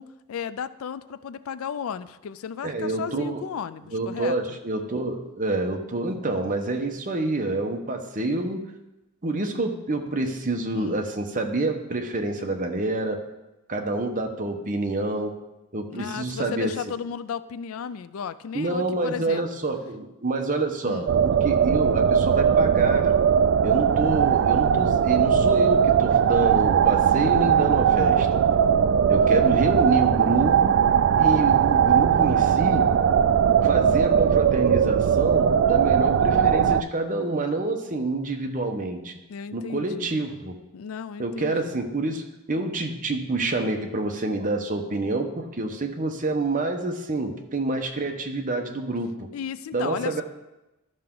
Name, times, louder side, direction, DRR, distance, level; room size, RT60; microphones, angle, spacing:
voice 1, 0.0-4.6 10.7-11.0 15.9-19.5 20.9-21.2 29.2-29.8 39.3-40.2 40.7-41.8 49.3-50.2, left 7 dB, 65° left, 14 dB, 0.4 m, -35 dB
voice 2, 2.6-3.4 3.9-8.6 9.2-13.2 13.7-15.3 15.7-16.7 18.5-23.2 23.6-28.4 29.1-30.8 31.2-32.9 33.6-39.2 39.5-40.5 41.2-49.1 49.7-50.2, right 2 dB, 40° right, 3 dB, 1.0 m, -27 dB
sound 1, 21.1-36.8, right 8 dB, 60° right, 0.3 m, -19 dB
13.0 x 5.8 x 3.8 m, 0.99 s
head